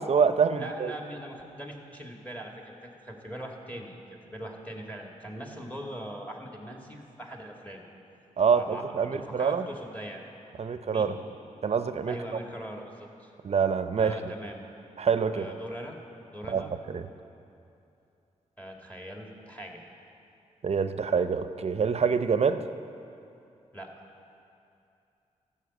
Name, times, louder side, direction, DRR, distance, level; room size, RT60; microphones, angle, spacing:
voice 1, 0.0-0.9 8.4-9.7 10.6-11.2 11.6-12.2 13.4-14.3 15.0-15.5 16.5-17.1 20.6-22.6, right 6 dB, 50° right, 11 dB, 0.6 m, -26 dB
voice 2, 0.5-7.8 8.5-10.2 10.9-11.1 12.1-13.3 14.0-14.6 15.3-16.0 16.3-16.7 18.6-19.8 23.7-24.0, right 1 dB, 10° left, 1 dB, 1.9 m, -41 dB
13.5 x 5.8 x 8.1 m, 2.6 s
cardioid pair, 65°, 14 cm